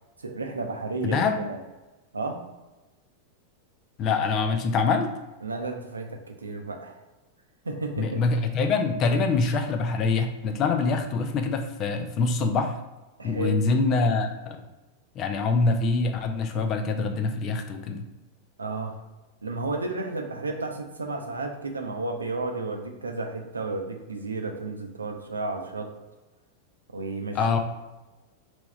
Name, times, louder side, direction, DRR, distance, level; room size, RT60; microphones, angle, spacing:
voice 1, 0.2-1.6 2.1-2.4 5.4-7.0 7.6-8.2 13.2-13.6 18.6-19.0 19.4-25.9 26.9-27.6, right 3 dB, 75° right, 3 dB, 0.5 m, -32 dB
voice 2, 1.0-1.4 4.0-5.1 8.0-12.8 13.2-14.6 15.2-18.1 27.3-27.6, left 4 dB, 35° left, 6 dB, 0.5 m, -25 dB
3.5 x 3.1 x 4.0 m, 1.1 s
figure-of-eight pair, 90°, 0 cm